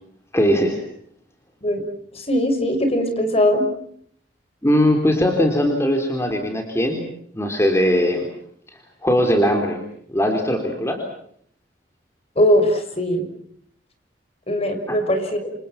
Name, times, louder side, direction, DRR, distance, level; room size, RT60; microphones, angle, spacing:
voice 1, 0.3-0.8 4.6-7.0 7.3-8.3 8.7-9.8 10.1-11.0 14.9-15.0, equal, 15° left, 3 dB, 3.9 m, -20 dB
voice 2, 2.1-3.7 12.4-13.3 14.5-15.5, equal, 35° left, 7 dB, 6.3 m, -20 dB
29.0 x 28.0 x 5.9 m, 0.66 s
head